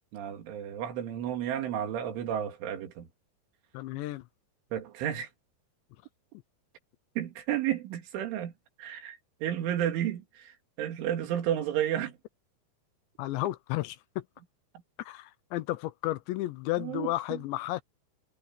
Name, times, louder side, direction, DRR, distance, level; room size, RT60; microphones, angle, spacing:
voice 1, 0.1-3.1 4.7-5.3 7.2-8.5 8.8-12.2 16.8-17.4, right 10 dB, 85° right, 4.8 m, -32 dB
voice 2, 3.7-4.2 13.2-14.2 15.0-17.8, left 17 dB, 80° left, 2.9 m, -33 dB
omnidirectional pair, 5.4 m